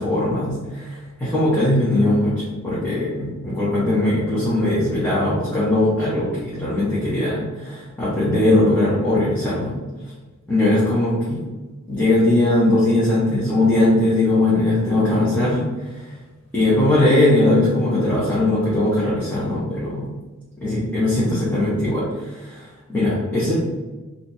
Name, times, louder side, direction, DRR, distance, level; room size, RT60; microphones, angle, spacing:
voice 1, 0.0-9.8 10.5-11.4 11.9-16.1 16.5-20.1 20.6-23.6, left 1 dB, 5° left, -10 dB, 0.8 m, -20 dB
3.0 x 2.4 x 4.0 m, 1.2 s
head